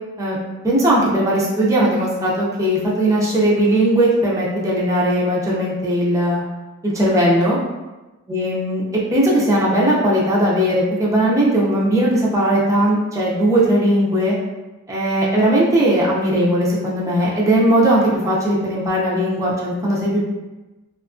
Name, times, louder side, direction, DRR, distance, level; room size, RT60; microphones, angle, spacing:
voice 1, 0.6-6.4 6.8-7.6 8.3-8.8 9.1-14.4 14.9-20.2, right 1 dB, 15° right, -6 dB, 0.4 m, -18 dB
2.7 x 2.3 x 2.4 m, 1.1 s
head